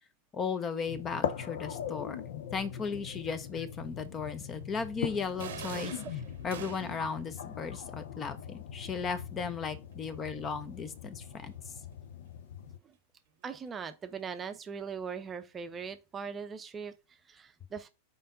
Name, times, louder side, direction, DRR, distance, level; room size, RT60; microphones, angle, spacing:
voice 1, 0.3-2.2 2.5-5.9 6.4-11.5, left 5 dB, 25° left, 0.9 m, -36 dB
sound 1, 0.9-12.8, left 8 dB, 55° left, 0.6 m, -41 dB
sound 2, 5.4-7.1, right 8 dB, 60° right, 0.8 m, -43 dB
voice 2, 5.7-6.1 12.8-13.0 13.4-17.9, right 6 dB, 20° right, 0.7 m, -41 dB
5.4 x 4.6 x 3.9 m
figure-of-eight pair, 90°, 0 cm